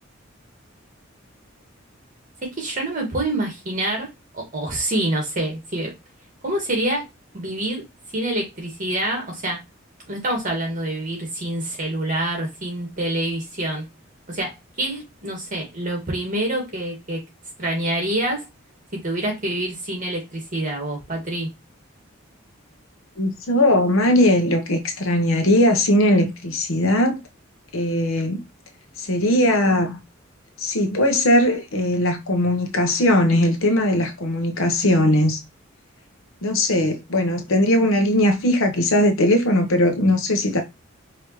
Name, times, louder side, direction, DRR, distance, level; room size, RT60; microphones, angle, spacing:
voice 1, 2.4-4.1 4.3-5.9 6.4-7.0 7.3-7.8 8.1-9.6 10.1-13.8 14.3-17.2 17.6-18.4 18.9-21.5, right 1 dB, 40° right, 1.8 m, -26 dB
voice 2, 23.2-27.2 27.7-28.4 29.0-30.0 30.6-35.4 36.4-40.6, left 1 dB, 80° left, 1.0 m, -19 dB
4.9 x 3.0 x 3.1 m
head